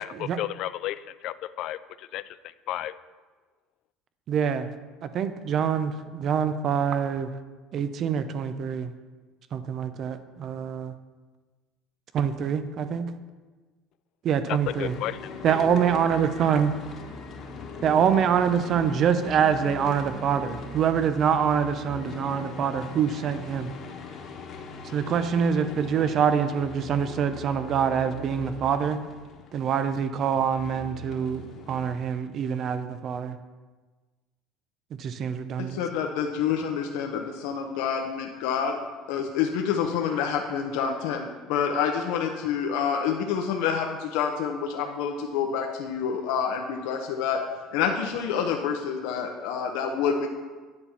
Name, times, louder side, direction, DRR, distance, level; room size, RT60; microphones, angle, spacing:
voice 1, 0.0-2.9 14.5-15.6, left 13 dB, 60° left, 0.4 m, -33 dB
voice 2, 4.3-4.7 5.0-7.3 7.7-8.9 9.5-10.9 12.1-13.1 14.2-14.9 15.4-16.7 17.8-23.7 24.9-29.0 29.5-33.4 35.0-35.8, right 7 dB, 45° right, 0.6 m, -25 dB
sound 1, 14.7-32.0, left 4 dB, 45° left, 1.2 m, -41 dB
voice 3, 35.6-38.8 39.1-47.4 47.7-50.3, left 7 dB, 80° left, 0.8 m, -27 dB
9.8 x 4.3 x 7.0 m
cardioid pair, 125°, 0 cm